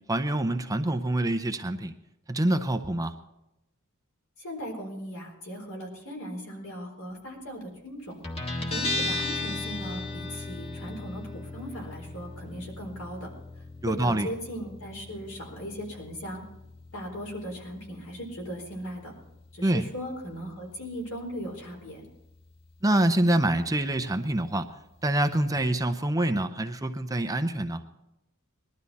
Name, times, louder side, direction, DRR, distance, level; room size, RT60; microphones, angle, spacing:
voice 1, 0.1-1.9 2.3-3.1 13.8-14.3 19.6-19.8 22.8-24.7 25.0-27.8, right 1 dB, 15° right, 7 dB, 0.6 m, -26 dB
voice 2, 4.4-8.2 8.7-11.2 11.5-13.3 13.9-16.4 16.9-19.1 19.5-22.0, equal, 70° left, 1 dB, 4.1 m, -38 dB
Guitar, 8.2-25.4, left 2 dB, 25° left, 1.7 m, -38 dB
20.5 x 12.5 x 4.2 m, 0.92 s
head